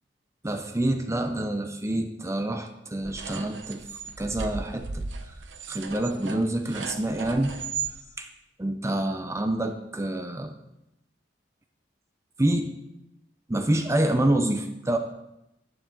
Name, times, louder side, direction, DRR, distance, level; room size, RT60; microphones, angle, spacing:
voice 1, 0.4-3.8 4.2-5.3 5.7-7.5 8.2-8.3 8.6-10.5 12.4-12.7 13.5-15.0, right 1 dB, 15° right, 6 dB, 0.6 m, -27 dB
sound 1, 3.0-7.9, right 5 dB, 75° right, 0.8 m, -36 dB
11.5 x 9.7 x 3.8 m, 0.87 s
head